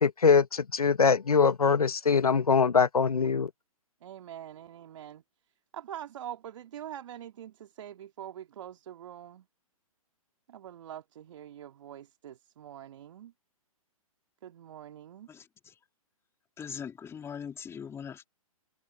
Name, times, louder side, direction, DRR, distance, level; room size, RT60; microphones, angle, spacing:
voice 1, 0.0-3.5, left 5 dB, 80° left, 1.4 m, -23 dB
voice 2, 4.0-5.2 5.7-9.5 10.5-13.3 14.4-15.3, right 10 dB, 55° right, 2.7 m, -44 dB
voice 3, 15.3-15.8 16.6-18.3, left 7 dB, 15° left, 3.7 m, -41 dB
figure-of-eight pair, 125°, 18 cm